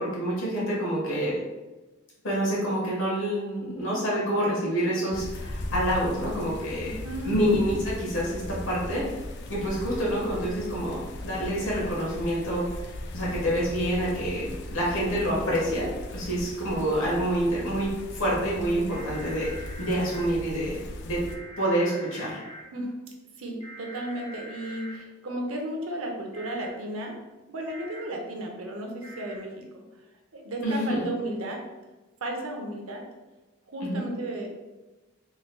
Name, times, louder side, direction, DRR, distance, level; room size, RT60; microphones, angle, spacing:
voice 1, 0.0-1.3 2.2-6.9 7.3-9.1 9.5-12.7 13.1-20.8 21.0-21.2 21.6-22.4 30.6-31.0 33.8-34.0, equal, 70° left, -5 dB, 1.4 m, -27 dB
sound 1, 5.1-21.4, left 1 dB, 55° left, 0.4 m, -38 dB
voice 2, 6.8-7.4 22.7-22.9 23.4-27.2 27.5-29.8 30.3-31.6 32.2-33.0 33.7-34.5, right 1 dB, 90° right, 1 dB, 0.7 m, -34 dB
sound 2, 18.9-20.3 21.2-22.6 23.6-25.0 26.3-26.7 27.7-28.0 29.0-29.4, equal, 35° left, 0.9 m, -44 dB
3.8 x 3.0 x 2.2 m, 1.1 s
head